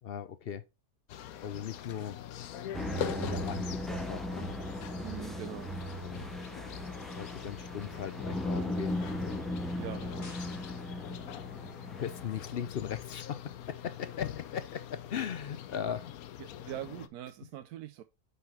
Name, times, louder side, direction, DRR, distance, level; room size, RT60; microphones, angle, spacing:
voice 1, 0.0-0.6 1.4-2.2 3.0-4.5 6.0-6.3 7.2-9.4 12.0-16.0, left 8 dB, 60° left, 0.6 m, -38 dB
sound 1, 1.1-17.1, left 10 dB, 75° left, 1.1 m, -43 dB
sound 2, 2.7-12.5, equal, ahead, 0.5 m, -37 dB
voice 2, 5.0-5.7 9.7-10.4 16.4-18.0, right 12 dB, 80° right, 1.1 m, -43 dB
sound 3, 9.7-10.6, left 4 dB, 90° left, 2.5 m, -48 dB
5.7 x 5.5 x 4.3 m
omnidirectional pair, 1.6 m